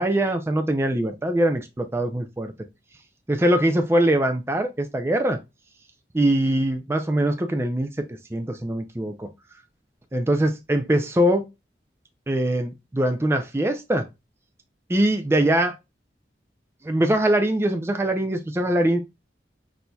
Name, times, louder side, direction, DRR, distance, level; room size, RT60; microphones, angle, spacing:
voice 1, 0.0-2.5 3.3-5.4 6.1-9.3 10.1-11.5 12.3-14.1 14.9-15.8 16.8-19.0, right 1 dB, 15° right, 0.4 m, -22 dB
6.1 x 2.7 x 2.2 m
head